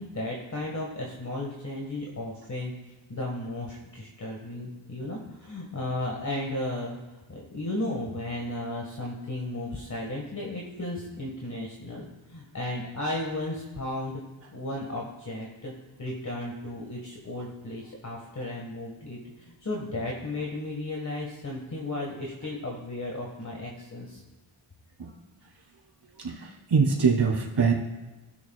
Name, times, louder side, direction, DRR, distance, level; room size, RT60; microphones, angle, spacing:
voice 1, 0.0-2.7 3.1-7.0 7.3-14.2 14.5-15.7 16.0-24.2, left 1 dB, 35° left, -2 dB, 1.7 m, -34 dB
voice 2, 26.2-27.7, right 5 dB, 50° right, -3 dB, 2.9 m, -23 dB
17.0 x 7.0 x 2.4 m, 1.2 s
wide cardioid pair, 90°, 50 cm